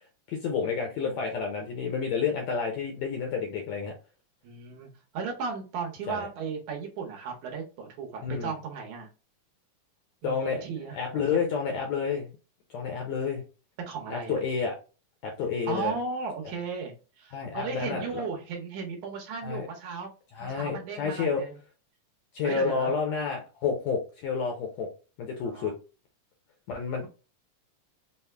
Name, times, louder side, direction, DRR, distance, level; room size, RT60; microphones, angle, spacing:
voice 1, 0.3-3.9 6.1-6.3 8.2-8.5 10.2-10.6 10.9-12.3 12.7-13.4 14.1-14.7 15.2-16.0 17.3-18.2 19.4-19.7 20.3-21.4 22.3-24.9 25.2-25.7 26.7-27.1, left 6 dB, 75° left, 1 dB, 1.6 m, -30 dB
voice 2, 4.4-9.1 10.2-11.2 13.9-14.4 15.7-20.1 20.4-21.6 22.4-22.9 25.4-25.7, right 5 dB, 70° right, 1 dB, 2.0 m, -36 dB
5.6 x 2.1 x 3.3 m, 0.33 s
omnidirectional pair, 3.9 m